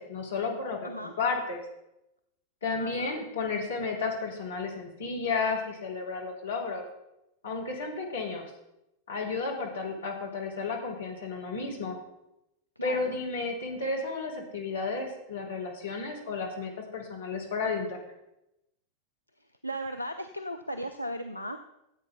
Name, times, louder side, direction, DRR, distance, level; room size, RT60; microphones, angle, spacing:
voice 1, 0.0-1.6 2.6-6.8 7.4-8.5 9.1-12.0 12.8-18.0, left 4 dB, 65° left, -1 dB, 2.7 m, -32 dB
voice 2, 2.8-3.1 12.8-13.2 19.6-21.6, equal, 90° left, 6 dB, 0.5 m, -36 dB
14.0 x 8.3 x 3.9 m, 0.87 s
figure-of-eight pair, 90°, 0 cm